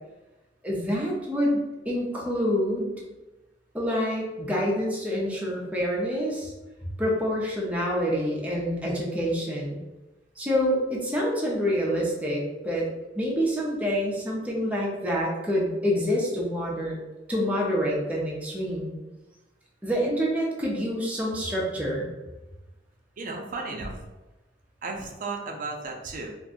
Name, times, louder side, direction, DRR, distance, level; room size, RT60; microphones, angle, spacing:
voice 1, 0.6-3.0 3.7-6.5 7.0-9.8 10.4-12.8 13.2-17.0 17.3-18.9 19.8-22.1, equal, 10° right, -4 dB, 0.6 m, -27 dB
voice 2, 23.2-23.9 24.8-26.3, right 3 dB, 50° right, 1 dB, 0.5 m, -34 dB
2.5 x 2.2 x 3.7 m, 1.1 s
head